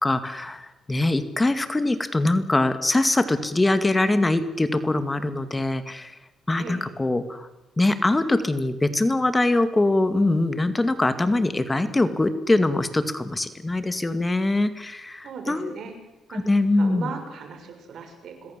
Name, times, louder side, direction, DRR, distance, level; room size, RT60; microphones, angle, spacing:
voice 1, 0.0-6.2 6.5-7.5 7.8-15.7 16.3-17.1, left 2 dB, 15° left, 10 dB, 2.2 m, -23 dB
voice 2, 15.2-15.9 16.3-16.5 16.8-18.6, right 5 dB, 65° right, 6 dB, 6.7 m, -37 dB
26.5 x 21.0 x 7.6 m, 1.0 s
cardioid pair, 90°, 0 cm